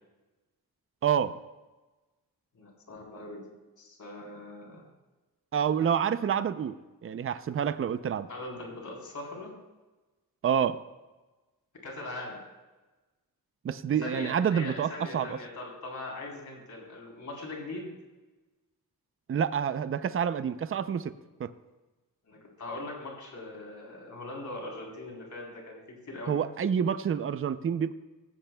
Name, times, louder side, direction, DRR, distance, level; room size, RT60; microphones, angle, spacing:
voice 1, 1.0-1.3 5.5-6.8 7.0-8.3 10.4-10.8 13.6-15.4 19.3-21.1 21.4-21.5 26.3-27.9, right 8 dB, 40° right, 12 dB, 0.5 m, -28 dB
voice 2, 2.5-4.9 8.3-9.6 11.8-12.4 14.0-18.0 22.3-25.8 26.1-26.4, left 2 dB, 55° left, -1 dB, 3.6 m, -41 dB
17.0 x 14.5 x 2.2 m, 1.2 s
wide cardioid pair, 165°, 36 cm